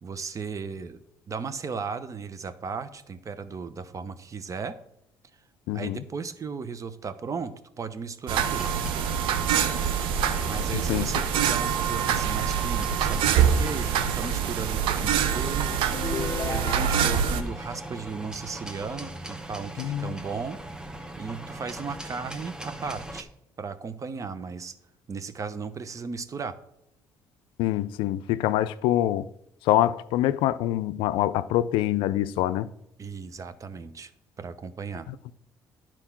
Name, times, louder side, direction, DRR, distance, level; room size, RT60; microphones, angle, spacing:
voice 1, 0.0-1.0 1.3-4.8 5.7-8.8 10.4-15.9 16.1-20.6 21.2-23.3 23.6-24.7 25.1-26.6 33.0-34.1 34.4-35.1, right 5 dB, 40° right, 0.8 m, -36 dB
voice 2, 5.7-6.0 10.7-11.2 19.8-20.1 27.6-29.3 29.6-32.7 35.1-35.2, left 13 dB, 80° left, 0.4 m, -25 dB
sound 1, 8.3-17.4, right 8 dB, 75° right, 0.7 m, -25 dB
sound 2, 8.4-23.2, right 1 dB, 10° right, 0.9 m, -39 dB
sound 3, 15.9-17.4, left 5 dB, 35° left, 0.6 m, -34 dB
9.8 x 4.5 x 5.9 m
supercardioid pair, 75°, 9 cm